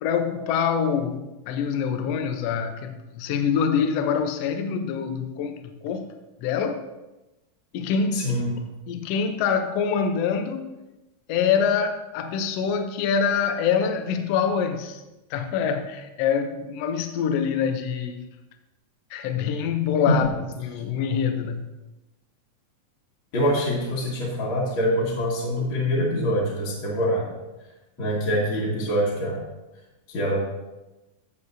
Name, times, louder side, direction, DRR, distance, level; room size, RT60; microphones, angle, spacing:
voice 1, 0.0-6.1 6.4-6.8 7.7-8.3 8.9-10.7 11.3-15.0 15.3-18.3 19.1-20.3 20.6-21.7, left 7 dB, 80° left, 7 dB, 1.4 m, -25 dB
voice 2, 8.1-8.5 20.1-20.2 23.3-27.3 28.0-29.4 30.1-30.5, equal, 45° left, -5 dB, 2.1 m, -24 dB
15.0 x 6.9 x 2.7 m, 1.0 s
omnidirectional pair, 3.9 m